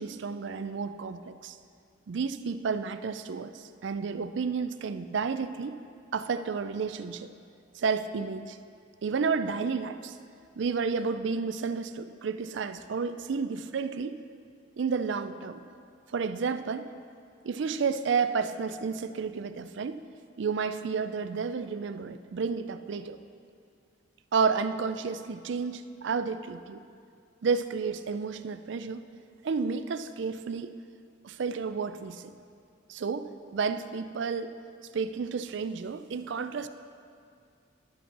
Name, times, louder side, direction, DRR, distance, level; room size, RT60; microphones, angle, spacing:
voice 1, 0.0-1.6 2.1-5.8 6.1-7.3 7.7-8.6 9.0-10.2 10.6-14.2 14.8-15.6 16.1-16.9 17.4-20.0 20.4-23.2 24.3-26.8 27.4-29.0 29.4-30.7 31.2-32.3 32.9-34.6 34.9-36.7, right 5 dB, 60° right, 11 dB, 0.4 m, -31 dB
11.0 x 5.2 x 6.6 m, 2.4 s
head